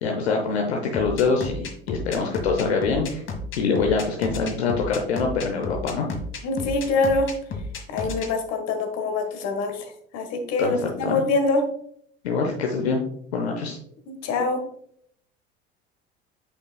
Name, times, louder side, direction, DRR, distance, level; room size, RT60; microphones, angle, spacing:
voice 1, 0.0-3.2 3.6-6.1 10.6-11.2 12.2-13.0 13.3-13.8, left 4 dB, 80° left, 1 dB, 0.9 m, -24 dB
sound 1, 0.9-8.3, left 3 dB, 40° left, 1.5 m, -32 dB
voice 2, 6.4-7.3 7.9-11.6 14.1-14.6, left 3 dB, 55° left, 5 dB, 1.5 m, -25 dB
8.6 x 5.4 x 2.3 m, 0.66 s
figure-of-eight pair, 65°, 32 cm